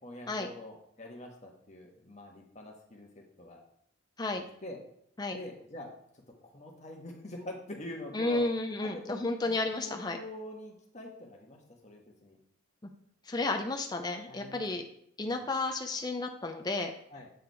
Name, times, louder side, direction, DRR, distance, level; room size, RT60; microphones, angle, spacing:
voice 1, 0.0-3.6 4.3-4.8 5.3-5.9 6.1-8.5 8.8-9.5 9.8-12.4 14.3-14.6 15.2-15.4 17.1-17.3, left 1 dB, 35° left, 1 dB, 1.4 m, -45 dB
voice 2, 8.1-10.2 13.3-14.8 15.2-16.9, left 2 dB, 20° left, 4 dB, 0.5 m, -32 dB
7.9 x 4.9 x 4.7 m, 0.68 s
head